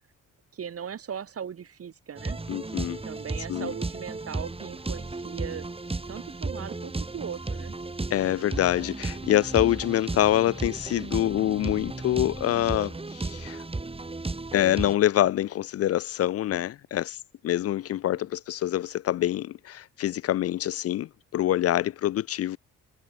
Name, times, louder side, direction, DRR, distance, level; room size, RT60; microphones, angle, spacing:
voice 1, 0.5-2.4 3.0-5.7 6.1-7.8 18.1-18.2, right 8 dB, 50° right, 3.6 m, -38 dB
sound 1, 2.2-14.9, right 3 dB, 20° right, 4.6 m, -34 dB
voice 2, 2.5-3.0 3.5-3.7 8.1-13.6 14.5-17.2 17.4-22.6, left 13 dB, 55° left, 0.4 m, -25 dB
cardioid pair, 90°, 30 cm